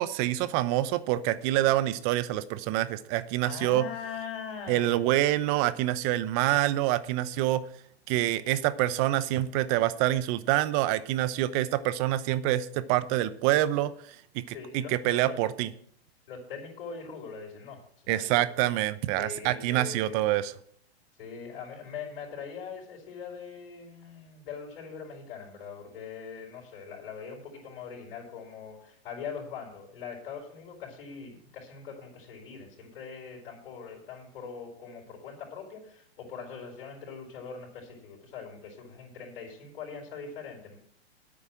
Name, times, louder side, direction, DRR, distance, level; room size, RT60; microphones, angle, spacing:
voice 1, 0.0-3.8 4.7-7.6 8.1-13.9 14.3-14.4 14.7-15.7 18.1-20.5, right 14 dB, 35° right, 15 dB, 0.8 m, -26 dB
voice 2, 3.4-5.1 14.5-15.4 16.3-18.5 19.2-20.2 21.2-40.8, left 6 dB, 55° left, 0 dB, 5.0 m, -42 dB
9.6 x 8.7 x 7.6 m, 0.65 s
hypercardioid pair, 125°, 32 cm